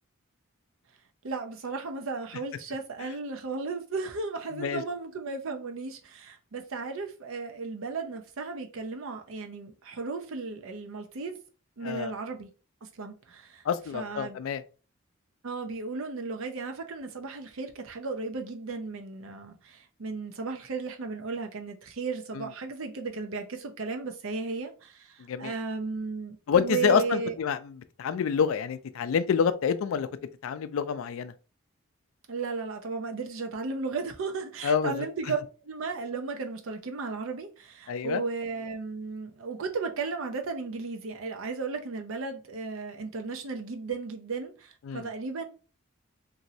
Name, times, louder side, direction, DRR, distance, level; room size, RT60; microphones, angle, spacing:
voice 1, 1.2-11.4 11.8-12.5 12.8-13.6 13.9-14.4 15.4-27.4 32.3-35.4 35.6-45.5, right 4 dB, 75° right, 0.6 m, -35 dB
voice 2, 13.7-14.6 25.3-25.5 26.5-27.6 28.0-30.1 30.4-31.3 34.6-35.1 37.9-38.2 44.9-45.1, left 7 dB, 75° left, 0.3 m, -27 dB
3.0 x 2.6 x 2.6 m
head